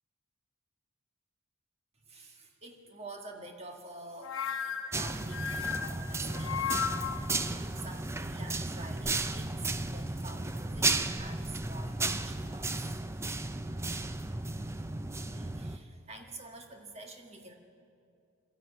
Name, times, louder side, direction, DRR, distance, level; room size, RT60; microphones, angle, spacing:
voice 1, 2.0-6.7 7.1-13.3 14.0-14.1 14.5-17.5, right 2 dB, 30° right, 3 dB, 1.7 m, -48 dB
sound 1, 4.2-7.3, left 7 dB, 65° left, 0.9 m, -35 dB
sound 2, 4.9-15.8, right 2 dB, 10° right, 0.5 m, -34 dB
sound 3, 5.4-15.6, equal, 80° right, 6.7 m, -60 dB
21.5 x 14.0 x 9.0 m, 2.5 s
head